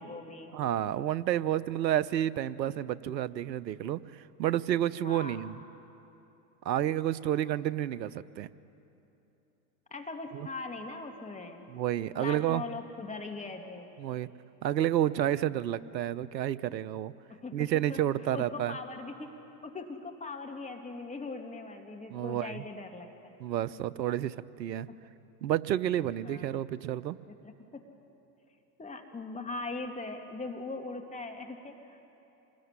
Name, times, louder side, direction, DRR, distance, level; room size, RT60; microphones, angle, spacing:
voice 1, 0.0-0.5 5.0-5.5 7.3-7.4 9.9-11.7 12.2-13.9 17.3-18.0 18.3-19.3 19.6-23.3 26.2-26.6 27.4-27.8 28.8-32.0, left 3 dB, 15° left, 3 dB, 2.2 m, -40 dB
voice 2, 0.5-5.6 6.6-8.5 10.3-10.5 11.7-12.6 14.0-14.3 14.6-17.1 17.5-18.8 22.1-22.6 23.4-24.9 25.4-27.2, right 12 dB, 85° right, 17 dB, 0.9 m, -30 dB
27.0 x 20.5 x 9.7 m, 3.0 s
hypercardioid pair, 90°, 50 cm